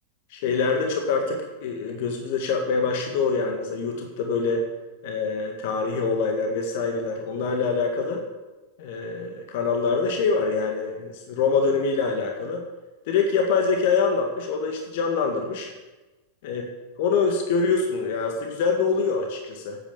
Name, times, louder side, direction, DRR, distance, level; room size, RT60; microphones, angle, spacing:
voice 1, 0.3-4.6 5.0-8.2 8.8-12.6 13.1-15.7 16.4-16.6 17.0-19.8, left 4 dB, 50° left, 3 dB, 1.7 m, -25 dB
11.0 x 9.0 x 6.7 m, 1.1 s
figure-of-eight pair, 90°, 0 cm